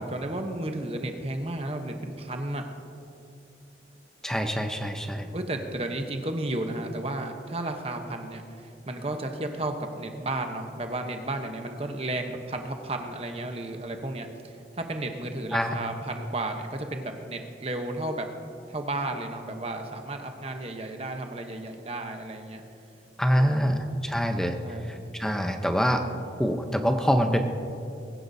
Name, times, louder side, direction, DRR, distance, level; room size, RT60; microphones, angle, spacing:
voice 1, 0.0-2.7 5.3-18.3 18.7-22.6 23.3-23.8 24.6-24.9, right 2 dB, 35° right, 5 dB, 0.9 m, -33 dB
voice 2, 4.2-5.3 15.5-15.8 23.2-24.6 24.9-26.0 26.4-27.4, equal, 5° left, 5 dB, 0.7 m, -25 dB
21.0 x 10.5 x 2.7 m, 2.6 s
head